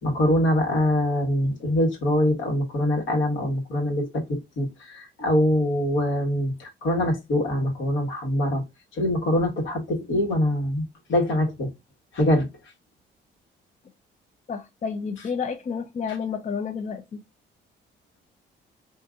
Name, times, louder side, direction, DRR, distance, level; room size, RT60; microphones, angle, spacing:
voice 1, 0.0-8.6 9.0-10.8 11.1-11.7 12.1-12.5, left 1 dB, 75° left, 1.4 m, -24 dB
voice 2, 14.5-17.2, left 6 dB, 35° left, 0.5 m, -30 dB
3.7 x 2.6 x 3.6 m
cardioid pair, 90°, 20 cm